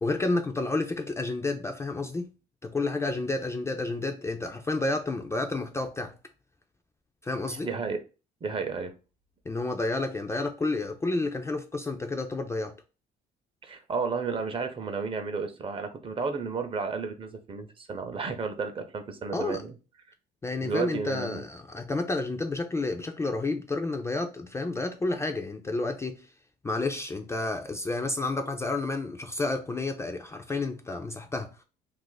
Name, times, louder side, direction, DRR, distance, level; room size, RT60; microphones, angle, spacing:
voice 1, 0.0-2.3 2.6-6.1 7.2-7.7 9.5-12.7 19.3-19.6 20.4-26.2 26.6-31.5, left 2 dB, 15° left, 0.3 m, -30 dB
voice 2, 7.5-8.0 8.4-8.9 13.6-19.8 20.6-21.4, right 5 dB, 30° right, 0.6 m, -32 dB
2.5 x 2.5 x 3.8 m
cardioid pair, 110°, 17 cm